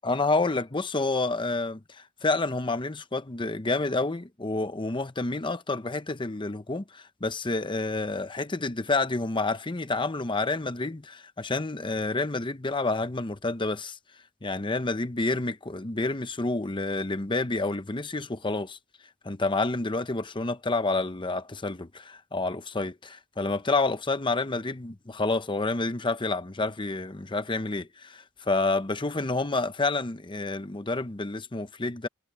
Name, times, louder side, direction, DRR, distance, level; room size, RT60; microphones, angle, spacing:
voice 1, 0.0-14.0 14.4-18.8 19.2-32.1, left 3 dB, 25° left, 0.8 m, -29 dB
head